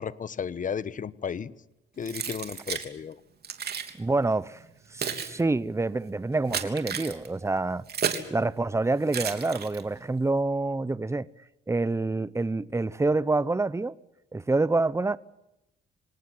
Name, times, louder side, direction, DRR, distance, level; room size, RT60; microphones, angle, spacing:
voice 1, 0.0-1.5 2.0-3.2, left 7 dB, 40° left, 1.2 m, -34 dB
Keys jangling, 2.1-2.9 3.4-3.9 4.6-8.3 9.1-10.0, right 7 dB, 55° right, 3.4 m, -33 dB
voice 2, 4.0-4.6 4.9-7.8 8.3-11.3 11.7-13.9 14.3-15.2, right 3 dB, 15° right, 1.0 m, -27 dB
26.5 x 18.5 x 7.9 m
cardioid pair, 90°, 20 cm